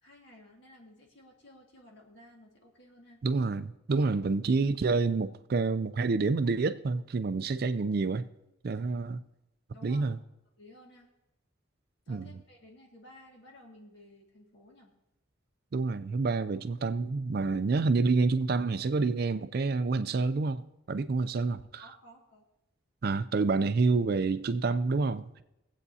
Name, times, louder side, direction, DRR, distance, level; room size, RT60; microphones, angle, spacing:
voice 1, 0.0-3.2 8.8-8.9 9.7-10.1 10.6-11.1 12.1-14.9 21.8-22.5, left 1 dB, 55° left, 1.9 m, -55 dB
voice 2, 3.2-8.3 8.6-9.2 9.8-10.2 12.1-12.3 15.7-20.6 20.9-21.8 23.0-25.4, right 4 dB, 45° right, 0.3 m, -28 dB
22.5 x 8.1 x 2.7 m
head